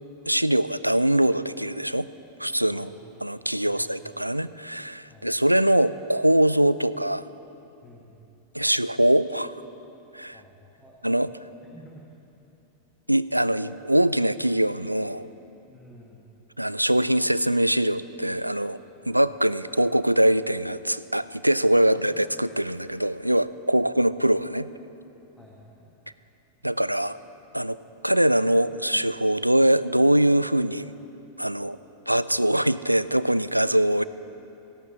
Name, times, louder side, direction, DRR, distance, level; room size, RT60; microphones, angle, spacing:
voice 1, 0.3-2.1 2.4-2.9 3.2-7.2 8.5-9.5 10.1-10.4 11.0-11.3 13.1-15.3 16.6-18.8 19.1-24.7 26.6-27.2 27.5-27.8 28.0-30.9 31.4-31.8 32.1-34.0, right 1 dB, 90° right, 16 dB, 0.3 m, -22 dB
voice 2, 3.7-4.0 5.1-5.3 7.8-8.2 8.6-9.1 10.3-11.3 11.6-12.1 15.7-16.2 19.0-19.2 21.8-22.3 25.4-26.0, left 1 dB, 5° left, -3 dB, 1.8 m, -51 dB
15.0 x 11.5 x 7.3 m, 2.9 s
figure-of-eight pair, 90°, 0 cm